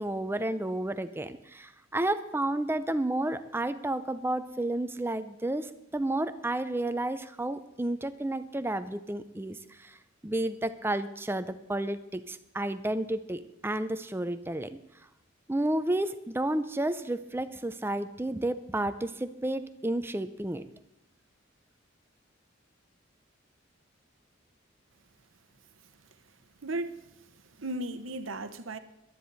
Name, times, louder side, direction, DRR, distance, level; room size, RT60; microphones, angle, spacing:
voice 1, 0.0-10.0 10.2-14.8 15.5-20.6, right 1 dB, 10° right, 0.5 m, -31 dB
voice 2, 26.6-27.0 27.6-28.8, right 2 dB, 80° right, 1.0 m, -35 dB
18.0 x 12.5 x 4.1 m
head